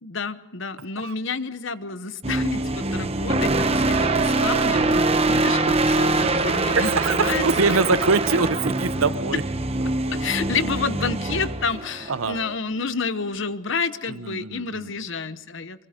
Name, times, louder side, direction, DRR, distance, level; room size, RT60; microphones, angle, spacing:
voice 1, 0.0-7.8 9.3-9.4 10.1-15.9, left 4 dB, 60° left, 13 dB, 1.0 m, -29 dB
sound 1, 2.2-12.5, right 2 dB, 30° right, 1.0 m, -23 dB
voice 2, 6.8-9.4 12.1-12.4 14.1-14.9, right 4 dB, 75° right, 14 dB, 0.9 m, -23 dB
25.5 x 23.5 x 5.1 m, 1.1 s
head